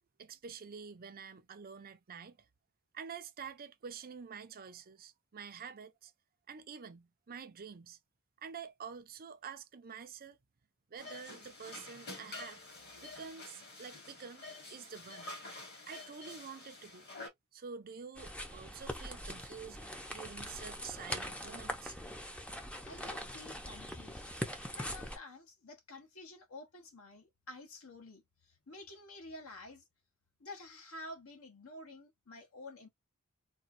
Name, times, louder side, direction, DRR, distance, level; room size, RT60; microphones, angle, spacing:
voice 1, 0.2-2.4 2.9-6.1 6.5-8.0 8.4-10.4 10.9-12.6 13.0-14.4 14.7-15.4 15.9-17.1 17.5-19.8 20.1-22.0, right 6 dB, 45° right, 0.5 m, -48 dB
sound 1, 11.0-17.3, left 2 dB, 50° left, 1.8 m, -48 dB
sound 2, 18.2-25.2, equal, 5° left, 0.6 m, -42 dB
voice 2, 22.8-24.2 24.5-29.8 30.4-32.9, left 2 dB, 70° left, 1.2 m, -50 dB
4.3 x 2.2 x 2.6 m
head